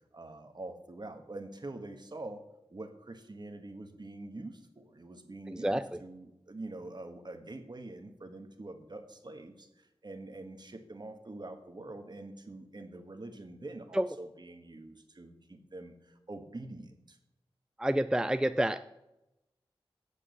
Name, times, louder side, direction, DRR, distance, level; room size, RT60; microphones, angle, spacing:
voice 1, 0.1-2.4 2.7-17.2, right 2 dB, 45° right, 6 dB, 1.5 m, -45 dB
voice 2, 5.5-6.0 13.9-14.1 17.8-18.8, right 1 dB, 5° right, 10 dB, 0.4 m, -29 dB
8.5 x 7.1 x 6.9 m, 0.91 s
cardioid pair, 45°, 10 cm